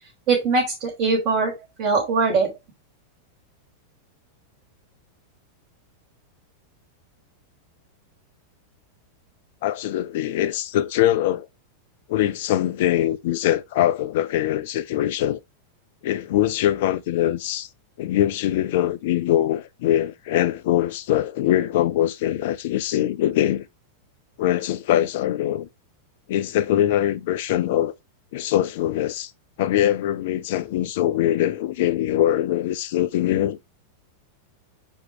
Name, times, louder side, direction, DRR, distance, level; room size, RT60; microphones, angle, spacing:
voice 1, 0.3-1.5 1.8-2.5, right 4 dB, 40° right, 3.9 m, -21 dB
voice 2, 9.6-11.5 12.1-15.4 16.0-17.7 18.0-23.6 24.4-25.7 26.3-27.9 28.3-29.3 29.6-33.6, left 12 dB, 55° left, 0.5 m, -22 dB
7.2 x 4.6 x 2.8 m
figure-of-eight pair, 90°, 0 cm